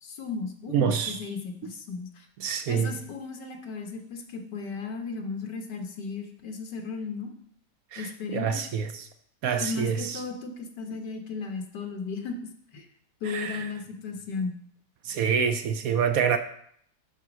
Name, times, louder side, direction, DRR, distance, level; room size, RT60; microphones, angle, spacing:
voice 1, 0.0-2.3 2.7-7.3 8.0-8.6 9.6-12.3 12.7-12.9 13.2-14.5, left 4 dB, 90° left, 4 dB, 1.8 m, -35 dB
voice 2, 0.7-1.2 2.4-2.9 7.9-9.1 9.4-10.2 13.3-13.7 15.0-16.4, right 7 dB, 65° right, 9 dB, 1.0 m, -27 dB
9.2 x 4.2 x 6.2 m, 0.66 s
omnidirectional pair, 1.8 m